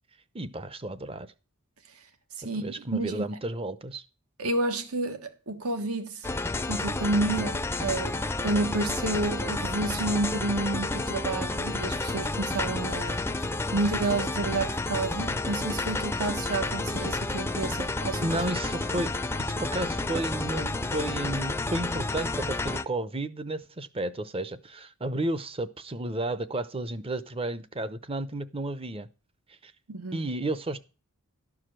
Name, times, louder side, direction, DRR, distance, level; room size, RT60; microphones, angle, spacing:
voice 1, 0.3-1.3 2.5-4.0 18.2-19.1 19.4-29.1 29.5-29.7 30.1-30.8, right 2 dB, 25° right, 0.7 m, -32 dB
voice 2, 2.4-3.2 4.4-6.3 6.6-13.5 13.7-18.2 29.9-30.3, right 2 dB, 75° right, 1.5 m, -30 dB
sound 1, 6.2-22.8, left 2 dB, 10° left, 0.5 m, -30 dB
12.5 x 4.9 x 7.5 m
head